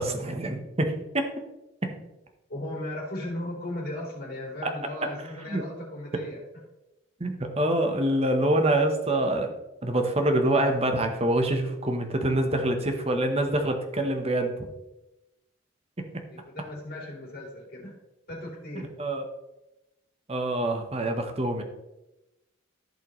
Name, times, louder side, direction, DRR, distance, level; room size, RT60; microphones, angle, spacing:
voice 1, 0.0-1.3 1.8-1.9 4.6-4.7 5.5-5.6 7.2-9.5 9.8-14.6 16.0-16.3 18.8-19.2 20.3-21.6, right 1 dB, 30° right, 5 dB, 0.9 m, -26 dB
voice 2, 2.5-6.4 16.3-18.0 18.3-18.9, left 1 dB, 45° left, -5 dB, 3.5 m, -36 dB
14.5 x 5.5 x 3.1 m, 0.96 s
head